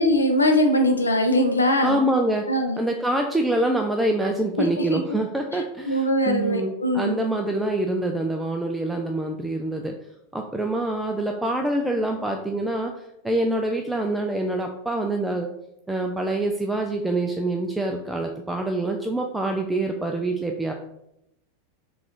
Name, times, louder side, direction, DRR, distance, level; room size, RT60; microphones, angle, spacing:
voice 1, 0.0-2.0 2.5-2.8 4.6-4.7 4.9-5.0 5.9-7.1, left 1 dB, 85° left, 4 dB, 0.6 m, -21 dB
voice 2, 1.8-2.5 2.8-9.9 10.3-12.9 13.2-15.5 15.9-20.7, right 1 dB, 5° right, 2 dB, 0.4 m, -25 dB
3.8 x 2.4 x 4.4 m, 0.82 s
figure-of-eight pair, 90°, 0 cm